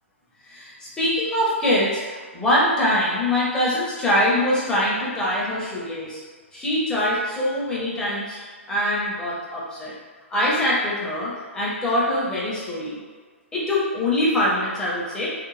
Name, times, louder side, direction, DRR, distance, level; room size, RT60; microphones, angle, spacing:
voice 1, 0.5-6.2 6.5-9.9 10.3-13.0 13.5-15.3, left 1 dB, 10° left, -7 dB, 0.7 m, -23 dB
2.5 x 2.2 x 3.1 m, 1.5 s
figure-of-eight pair, 115°, 7 cm